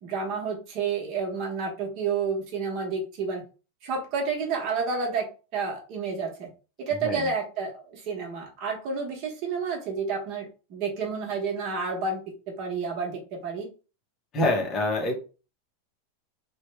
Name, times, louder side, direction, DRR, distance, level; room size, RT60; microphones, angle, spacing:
voice 1, 0.0-3.4 3.8-6.5 6.8-13.7, right 5 dB, 35° right, 0 dB, 1.0 m, -30 dB
voice 2, 14.3-15.2, left 2 dB, 20° left, 1 dB, 0.8 m, -26 dB
3.1 x 2.2 x 3.2 m, 0.34 s
supercardioid pair, 165°, 0 cm